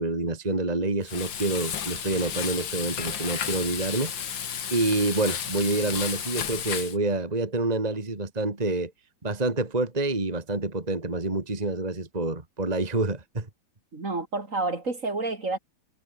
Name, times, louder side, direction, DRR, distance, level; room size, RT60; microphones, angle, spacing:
voice 1, 0.0-8.9 9.2-13.5, right 2 dB, 20° right, 2.4 m, -27 dB
Frying (food), 1.0-7.0, left 8 dB, 80° left, 2.4 m, -33 dB
voice 2, 13.9-15.6, right 3 dB, 40° right, 3.4 m, -29 dB
omnidirectional pair, 2.0 m